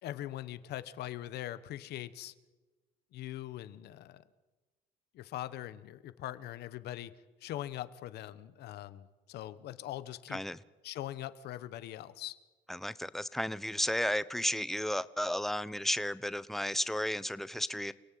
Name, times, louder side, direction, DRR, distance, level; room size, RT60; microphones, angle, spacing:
voice 1, 0.0-2.3 3.1-4.2 5.1-7.1 7.4-10.4 10.8-12.4, left 13 dB, 75° left, 1.3 m, -42 dB
voice 2, 12.7-17.9, left 1 dB, ahead, 0.9 m, -33 dB
29.0 x 17.5 x 9.4 m
cardioid pair, 110°, 17 cm